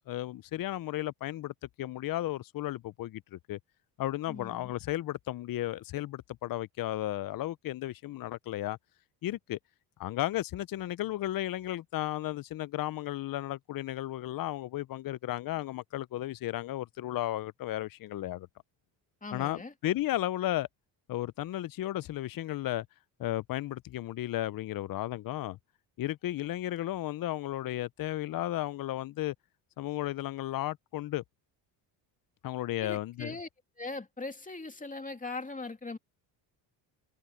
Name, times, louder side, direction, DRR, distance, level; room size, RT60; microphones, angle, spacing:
voice 1, 0.1-3.6 4.0-8.8 9.2-9.6 10.0-18.5 19.3-20.7 21.1-22.9 23.2-25.6 26.0-29.3 29.8-31.2 32.4-33.4, left 14 dB, 45° left, 0.7 m, -34 dB
voice 2, 4.3-4.7 19.2-19.7 32.8-33.5 33.8-36.0, left 3 dB, 15° left, 2.8 m, -40 dB
supercardioid pair, 80°, 46 cm